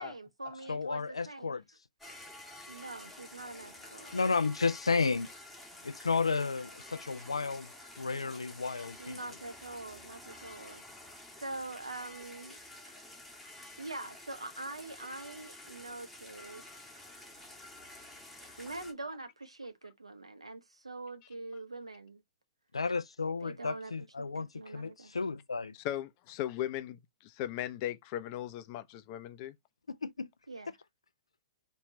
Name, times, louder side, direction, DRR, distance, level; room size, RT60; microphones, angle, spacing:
voice 1, 0.0-1.5 2.7-4.1 9.0-10.8 11.3-12.6 13.8-16.6 18.6-22.2 23.4-23.9 24.2-25.2 30.5-30.7, right 2 dB, 90° right, 1.0 m, -44 dB
voice 2, 0.7-1.6 4.1-5.3 5.8-7.7 8.0-9.2 22.7-25.7 30.0-30.3, left 4 dB, 85° left, 0.4 m, -32 dB
sound 1, 2.0-18.9, left 2 dB, ahead, 1.5 m, -50 dB
voice 3, 25.8-29.6, left 12 dB, 40° left, 0.7 m, -37 dB
4.4 x 3.0 x 3.7 m
figure-of-eight pair, 115°, 3 cm